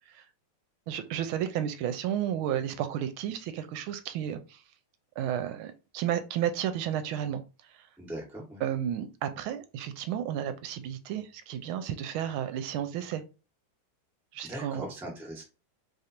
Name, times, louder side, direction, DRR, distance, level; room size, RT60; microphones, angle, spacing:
voice 1, 0.9-4.6 5.2-7.4 7.8-7.9 8.6-13.2 14.3-14.8, right 10 dB, 80° right, 9 dB, 1.4 m, -32 dB
voice 2, 8.0-8.6 14.4-15.4, right 1 dB, ahead, -1 dB, 0.8 m, -40 dB
3.4 x 2.5 x 4.2 m, 0.31 s
omnidirectional pair, 2.3 m